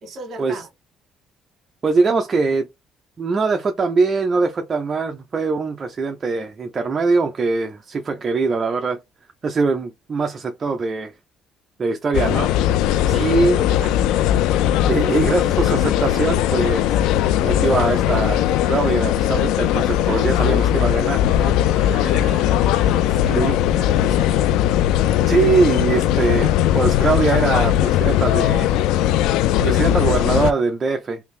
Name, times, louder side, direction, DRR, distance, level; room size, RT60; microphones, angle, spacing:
voice 1, 0.0-0.7 13.1-14.0 20.1-20.3 21.7-24.5, right 1 dB, 45° right, 1.5 m, -36 dB
voice 2, 1.8-2.7 3.2-9.0 9.4-11.1 11.8-12.5 13.1-13.6 14.9-17.0 17.4-21.6 23.3-23.5 25.3-28.7 29.6-31.2, right 4 dB, 30° right, 0.5 m, -22 dB
sound 1, 12.1-30.5, left 12 dB, 85° left, 0.3 m, -19 dB
3.4 x 2.6 x 3.2 m
cardioid pair, 130°, 0 cm